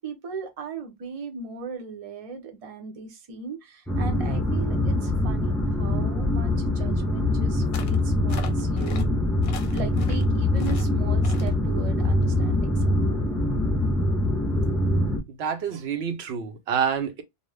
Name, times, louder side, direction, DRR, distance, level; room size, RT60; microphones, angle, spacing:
voice 1, 0.0-9.2 9.7-13.3, right 5 dB, 40° right, 0.6 m, -38 dB
sound 1, 3.9-15.2, left 1 dB, ahead, 0.3 m, -24 dB
sound 2, 7.7-8.0 8.3-9.0 9.4-10.2 10.6-10.9 11.2-11.5, left 7 dB, 60° left, 0.7 m, -40 dB
voice 2, 15.4-17.2, right 7 dB, 80° right, 0.9 m, -27 dB
2.6 x 2.1 x 3.2 m
omnidirectional pair, 1.1 m